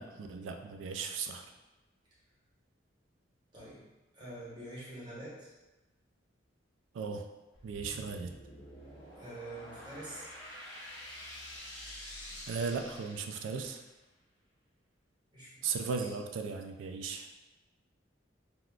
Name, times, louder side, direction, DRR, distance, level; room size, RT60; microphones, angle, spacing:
voice 1, 0.0-1.5 6.9-7.2 7.6-8.3 12.5-13.8 15.6-17.3, right 5 dB, 85° right, 5 dB, 0.3 m, -36 dB
voice 2, 3.5-3.9 4.1-5.5 9.2-10.3 15.3-16.1, right 1 dB, 25° right, -8 dB, 1.0 m, -46 dB
sound 1, 7.5-13.8, left 1 dB, 75° left, 0.8 m, -48 dB
3.5 x 2.4 x 2.3 m, 1.1 s
head